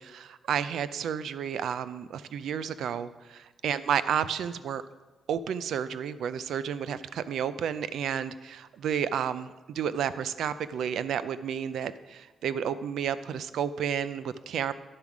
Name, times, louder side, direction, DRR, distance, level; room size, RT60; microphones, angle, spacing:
voice 1, 0.0-4.8 5.3-14.7, right 8 dB, 75° right, 14 dB, 0.4 m, -31 dB
9.9 x 7.1 x 4.9 m, 1.2 s
wide cardioid pair, 170°, 0 cm